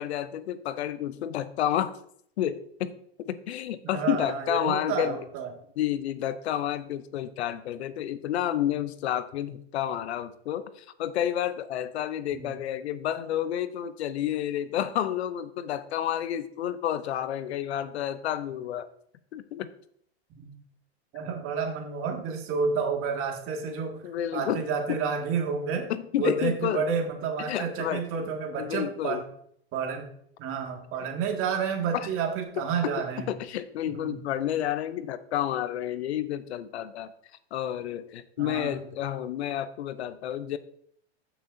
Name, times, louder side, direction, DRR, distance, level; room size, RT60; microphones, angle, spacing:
voice 1, 0.0-1.9 2.4-2.9 3.2-5.2 5.8-18.9 19.3-19.7 24.0-24.6 24.9-25.0 25.9-26.9 27.4-28.1 28.6-29.2 31.9-32.1 32.8-37.1 37.5-40.6, left 11 dB, 75° left, 14 dB, 0.7 m, -30 dB
voice 2, 3.8-5.5 12.3-12.5 20.4-20.5 21.1-24.0 24.3-25.9 26.2-29.2 29.7-30.1 30.4-33.3 33.9-34.2 38.4-38.7, right 6 dB, 40° right, 2 dB, 2.0 m, -30 dB
14.0 x 6.0 x 2.7 m, 0.67 s
hypercardioid pair, 115°, 33 cm